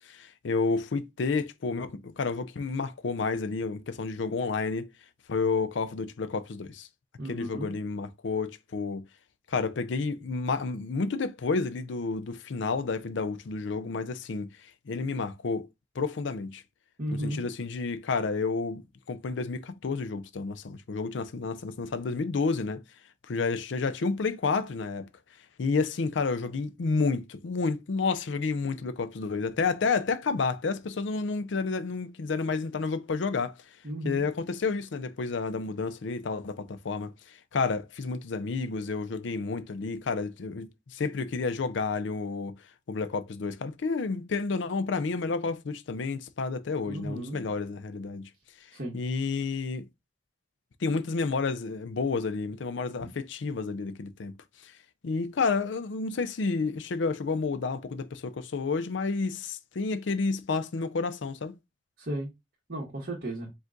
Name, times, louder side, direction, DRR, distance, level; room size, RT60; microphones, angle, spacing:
voice 1, 0.1-4.9 5.3-6.9 7.2-9.0 9.5-14.5 14.9-15.7 16.0-16.6 17.1-18.8 19.1-22.8 23.3-25.1 25.6-33.5 34.0-37.1 37.5-42.6 42.9-48.3 48.9-49.9 50.8-54.3 54.6-54.7 55.0-61.5, left 4 dB, 70° left, 0.5 m, -30 dB
voice 2, 7.2-7.7 17.0-17.4 33.8-34.2 46.8-47.5 48.7-49.0 62.0-62.3 62.7-63.5, right 1 dB, 55° right, 1.5 m, -34 dB
5.0 x 2.4 x 3.8 m
head